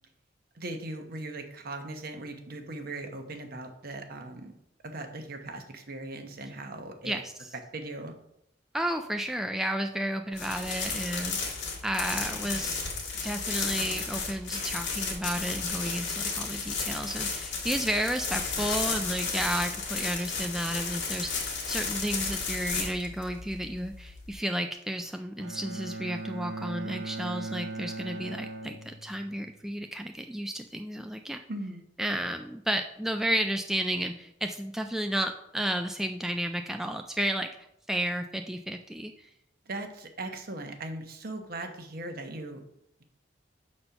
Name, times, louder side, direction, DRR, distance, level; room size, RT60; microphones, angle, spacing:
voice 1, 0.5-4.5 4.8-7.2 7.7-8.1 31.5-31.8 39.7-42.6, right 2 dB, 55° right, 5 dB, 1.0 m, -39 dB
voice 2, 7.1-7.5 8.7-11.5 11.8-12.8 13.2-31.4 32.0-37.5 37.9-39.1, right 1 dB, ahead, 5 dB, 0.3 m, -32 dB
sound 1, 10.3-24.3, left 4 dB, 90° left, 1.7 m, -33 dB
Bowed string instrument, 25.4-29.5, right 3 dB, 85° right, 0.6 m, -39 dB
6.7 x 4.3 x 5.7 m, 0.76 s
head